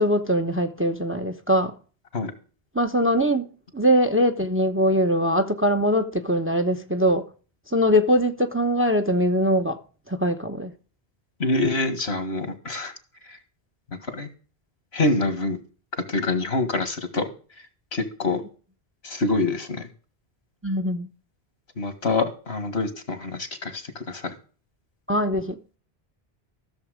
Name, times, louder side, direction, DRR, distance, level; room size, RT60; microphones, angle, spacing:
voice 1, 0.0-1.8 2.7-7.2 7.7-9.8 10.1-10.7 20.6-21.1 25.1-25.6, equal, 15° right, 0.8 m, -22 dB
voice 2, 11.4-12.9 13.3-13.4 14.1-14.3 14.9-15.6 16.1-17.3 17.9-18.4 19.0-19.9 21.8-24.3, left 2 dB, 80° left, 2.0 m, -26 dB
14.0 x 7.1 x 5.0 m
omnidirectional pair, 1.1 m